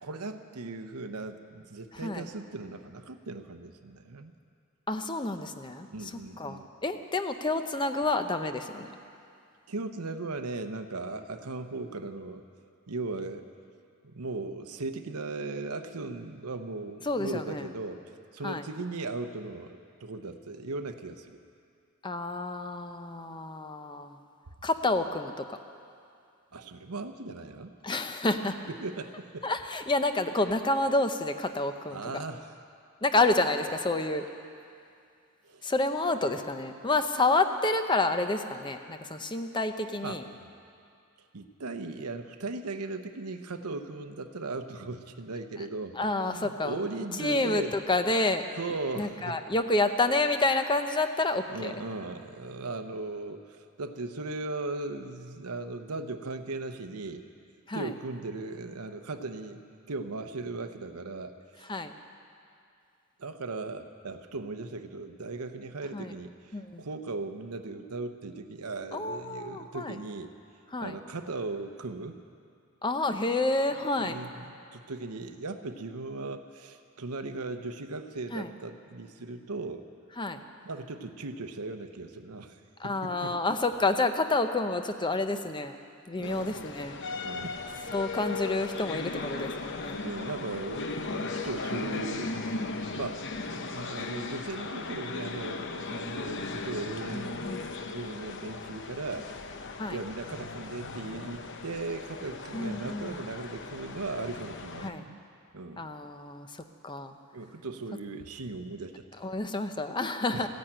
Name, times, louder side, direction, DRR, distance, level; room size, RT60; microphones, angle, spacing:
voice 1, 0.0-4.3 5.9-6.7 9.7-12.4 12.9-13.4 14.0-18.0 18.3-21.4 26.5-27.7 28.7-29.5 31.9-32.5 35.4-35.6 40.0-40.2 41.3-46.0 46.2-47.7 48.6-49.4 51.5-57.2 57.7-59.6 59.9-61.8 63.2-70.3 70.8-72.2 74.0-79.9 80.6-83.4 86.2-86.7 87.2-87.6 90.0-92.6 92.9-99.3 99.9-105.2 105.5-105.8 107.3-109.1 110.3-110.5, right 3 dB, 85° right, 8 dB, 0.9 m, -38 dB
voice 2, 4.9-5.9 6.4-8.9 17.1-17.7 18.4-18.6 22.0-24.2 24.6-25.6 27.8-28.6 29.4-32.0 33.0-34.2 35.6-40.2 46.0-46.8 47.2-48.4 49.0-51.7 57.7-57.9 61.7-61.9 65.9-66.1 66.5-66.8 68.9-70.0 70.7-71.0 72.8-74.2 78.3-78.5 80.2-80.4 82.8-85.8 86.1-87.0 87.9-90.0 97.1-97.7 99.8-100.0 102.5-103.2 104.8-105.1 105.8-107.2 109.2-110.5, left 2 dB, 20° left, 8 dB, 0.6 m, -29 dB
sound 1, 86.2-104.9, left 3 dB, 55° left, 0.8 m, -37 dB
15.0 x 10.5 x 8.8 m, 2.4 s
head